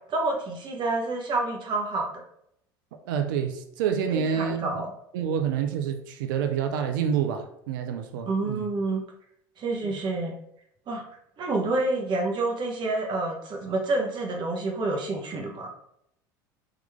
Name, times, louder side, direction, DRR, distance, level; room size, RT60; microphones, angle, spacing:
voice 1, 0.1-2.1 4.1-4.9 8.3-9.0 9.6-10.3 10.9-11.0 11.4-15.7, right 2 dB, 45° right, 1 dB, 1.2 m, -28 dB
voice 2, 3.1-4.7 5.1-8.7 9.8-10.0, right 8 dB, 75° right, 6 dB, 0.5 m, -28 dB
3.8 x 3.0 x 3.5 m, 0.73 s
hypercardioid pair, 80°, 11 cm